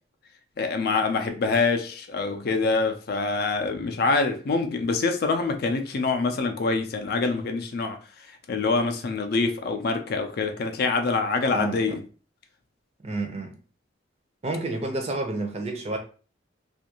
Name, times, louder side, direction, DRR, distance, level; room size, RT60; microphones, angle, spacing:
voice 1, 0.6-8.0 8.5-12.0, left 4 dB, 55° left, 0.4 m, -25 dB
voice 2, 11.5-12.0 13.0-13.5 14.4-16.0, right 2 dB, 35° right, 0.5 m, -29 dB
2.5 x 2.4 x 2.8 m
head